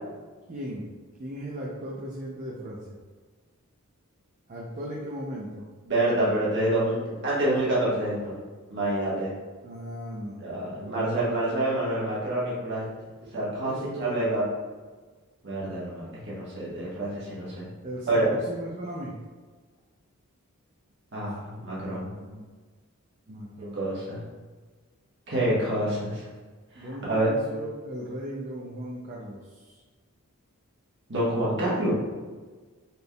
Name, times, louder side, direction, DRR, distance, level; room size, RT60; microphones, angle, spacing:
voice 1, 0.5-0.9 1.2-3.0 4.5-5.7 9.6-11.3 13.2-13.3 13.6-14.3 17.8-19.1 21.3-21.4 22.1-22.4 23.3-23.9 26.8-29.8, equal, 35° right, -4 dB, 0.4 m, -37 dB
voice 2, 5.9-8.4 8.7-9.3 10.4-12.8 13.3-14.4 15.4-17.7 18.1-18.3 21.1-22.1 23.7-24.2 25.3-26.3 26.8-27.3 31.1-31.9, right 1 dB, 50° right, -7 dB, 1.3 m, -27 dB
4.1 x 3.4 x 2.2 m, 1.4 s
head